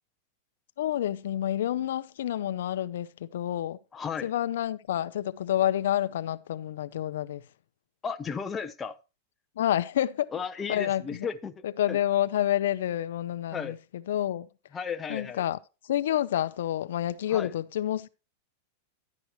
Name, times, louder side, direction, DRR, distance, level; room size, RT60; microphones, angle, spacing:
voice 1, 0.8-3.8 4.2-7.4 9.6-10.3 10.7-11.0 11.6-14.5 15.1-15.6 15.9-18.1, left 11 dB, 80° left, 0.5 m, -28 dB
voice 2, 3.9-4.3 8.0-9.0 10.3-12.0 13.5-13.8 14.7-15.4 17.3-17.5, left 6 dB, 15° left, 0.6 m, -34 dB
11.5 x 9.4 x 3.0 m
supercardioid pair, 145°, 0 cm